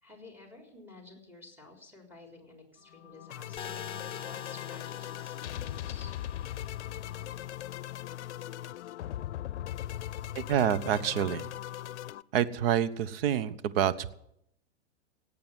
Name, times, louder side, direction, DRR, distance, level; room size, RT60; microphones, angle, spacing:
voice 1, 0.0-6.1, left 3 dB, 5° right, 2 dB, 4.1 m, -52 dB
sound 1, 2.9-12.2, left 12 dB, 75° left, 0.6 m, -39 dB
sound 2, 3.6-7.6, left 7 dB, 15° left, 1.0 m, -45 dB
voice 2, 10.3-11.5 12.3-14.1, right 9 dB, 55° right, 15 dB, 1.0 m, -27 dB
17.5 x 8.7 x 7.6 m, 0.76 s
hypercardioid pair, 125°, 35 cm